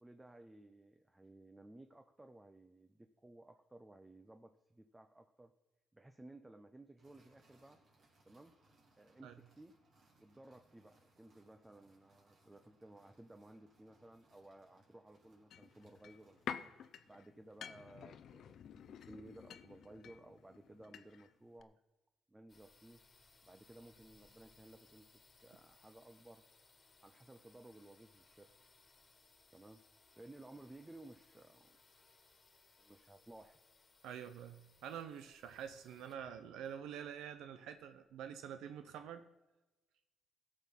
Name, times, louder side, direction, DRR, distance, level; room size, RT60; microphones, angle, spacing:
voice 1, 0.0-5.5 5.9-7.8 8.2-8.6 9.0-9.8 10.2-16.7 17.0-21.8 22.3-23.0 23.4-25.1 25.4-26.4 27.0-28.5 29.5-29.8 30.1-31.8 32.8-33.6, right 1 dB, 15° right, 7 dB, 0.7 m, -58 dB
sound 1, 7.0-17.0, right 2 dB, 60° right, 3.4 m, -72 dB
sound 2, 15.5-21.3 21.6-21.7, left 8 dB, 70° left, 0.7 m, -50 dB
sound 3, 22.5-38.1, left 3 dB, 35° left, 1.7 m, -68 dB
voice 2, 34.0-39.3, right 8 dB, 85° right, 9 dB, 0.6 m, -47 dB
16.0 x 6.6 x 5.4 m, 1.1 s
cardioid pair, 90°, 0 cm